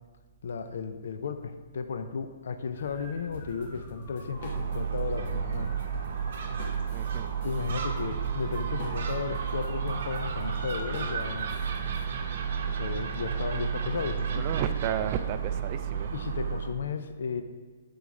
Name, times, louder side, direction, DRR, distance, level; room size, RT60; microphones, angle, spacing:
voice 1, 0.4-5.8 7.4-11.5 12.6-14.8 16.1-17.4, left 5 dB, 65° left, 8 dB, 0.5 m, -34 dB
sound 1, 2.7-12.3, left 1 dB, 25° left, 1.2 m, -48 dB
sound 2, 3.3-5.0 5.3-12.0, left 1 dB, 50° left, 1.3 m, -45 dB
Gull seagull, 4.3-16.7, right 7 dB, 55° right, 0.8 m, -32 dB
voice 2, 6.9-7.3 14.3-16.1, right 9 dB, 30° right, 10 dB, 0.3 m, -33 dB
8.3 x 3.9 x 4.8 m, 1.4 s
hypercardioid pair, 165°, 0 cm